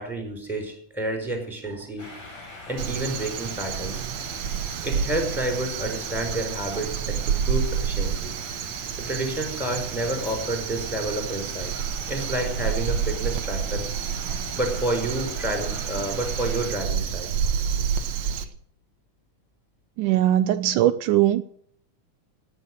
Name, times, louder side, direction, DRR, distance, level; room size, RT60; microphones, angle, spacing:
voice 1, 0.0-2.1 2.7-4.0 4.8-8.3 9.0-11.7 12.1-13.9 14.5-17.3, right 1 dB, ahead, 3 dB, 5.4 m, -29 dB
sound 1, 2.0-16.7, left 2 dB, 75° left, 7.3 m, -42 dB
Crow, 2.8-18.4, right 8 dB, 65° right, 2.1 m, -29 dB
voice 2, 20.0-21.4, right 13 dB, 80° right, 11 dB, 2.2 m, -20 dB
18.0 x 8.6 x 6.5 m, 0.62 s
omnidirectional pair, 3.7 m